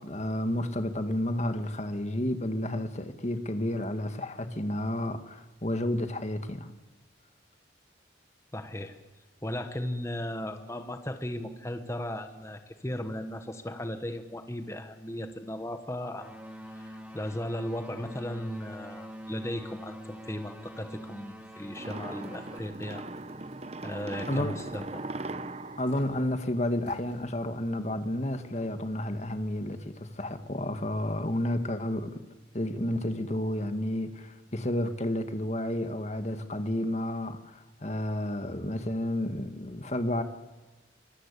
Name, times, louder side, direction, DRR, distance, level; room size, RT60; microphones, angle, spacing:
voice 1, 0.0-6.7 24.3-24.6 25.8-32.2 32.5-40.2, left 1 dB, 35° left, 2.0 m, -31 dB
voice 2, 8.5-8.9 9.4-16.4 16.7-23.1 23.8-25.0, left 1 dB, 15° left, 1.4 m, -36 dB
sound 1, 16.2-22.6, equal, 5° right, 2.4 m, -45 dB
sound 2, 21.7-27.1, right 2 dB, 35° right, 1.0 m, -40 dB
sound 3, 24.3-24.8 25.8-26.1 26.9-27.2 27.6-27.7 28.4-29.0, left 1 dB, 80° left, 5.4 m, -50 dB
25.5 x 22.5 x 8.4 m
head